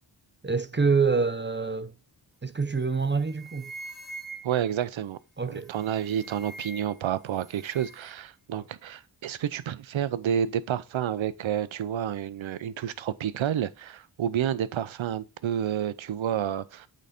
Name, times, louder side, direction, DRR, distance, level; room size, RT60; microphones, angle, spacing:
voice 1, 0.4-1.9 2.4-3.7 5.4-5.7, right 4 dB, 25° right, 0.7 m, -26 dB
sound 1, 2.6-2.8 3.1-4.8 5.6-7.1 7.3-8.1, right 2 dB, ahead, 1.4 m, -44 dB
voice 2, 4.4-5.2 5.5-16.9, right 9 dB, 80° right, 0.7 m, -30 dB
8.3 x 4.0 x 4.2 m
cardioid pair, 55°, 46 cm